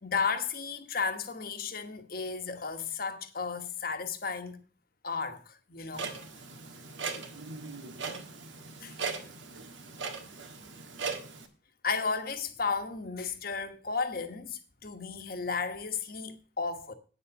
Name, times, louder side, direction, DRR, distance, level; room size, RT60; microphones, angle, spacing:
voice 1, 0.0-4.6 5.0-6.1 8.8-9.0 11.8-16.9, left 5 dB, 50° left, 1.2 m, -34 dB
Clock, 5.9-11.5, right 4 dB, 85° right, 1.6 m, -39 dB
9.3 x 6.9 x 6.8 m
head